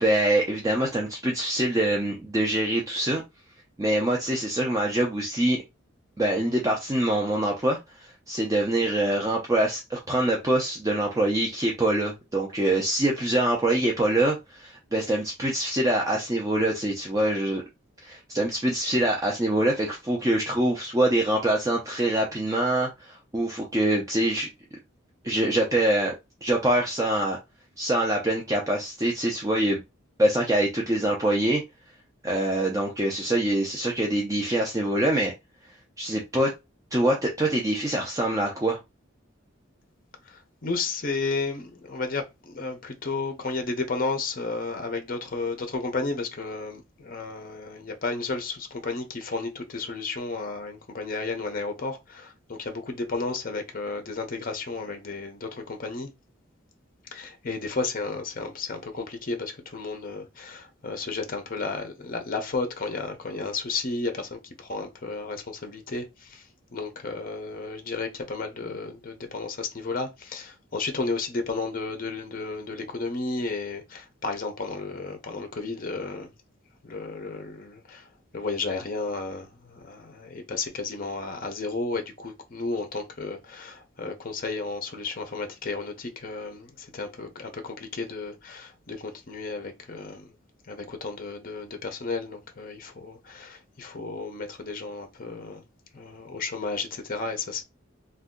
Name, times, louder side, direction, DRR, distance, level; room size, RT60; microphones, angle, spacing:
voice 1, 0.0-3.2 3.8-5.6 6.2-17.6 18.0-24.5 25.2-26.1 26.4-27.4 27.8-29.8 30.2-31.6 32.2-35.3 36.0-36.5 36.9-38.8, right 1 dB, 15° right, 0.5 m, -24 dB
voice 2, 40.3-56.1 57.1-66.4 66.7-76.3 76.8-78.1 78.3-90.3 90.7-95.6 95.9-97.6, left 3 dB, 45° left, 0.6 m, -33 dB
2.6 x 2.2 x 3.6 m
head